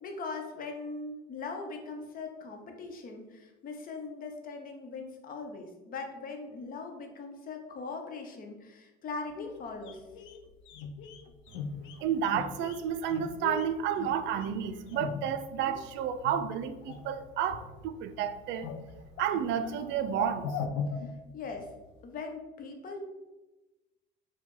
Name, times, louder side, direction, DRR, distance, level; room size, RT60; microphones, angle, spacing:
voice 1, 0.0-10.0 20.9-21.7 22.0-23.0, left 4 dB, 45° left, 0.9 m, -40 dB
sound 1, 9.3-15.8 16.2-17.1 17.4-18.1 18.4-21.8 22.0-22.1, left 5 dB, 65° left, 0.5 m, -40 dB
voice 2, 12.0-18.7 19.2-20.7, right 8 dB, 65° right, 0.4 m, -31 dB
4.7 x 2.3 x 3.7 m
supercardioid pair, 90°, 20 cm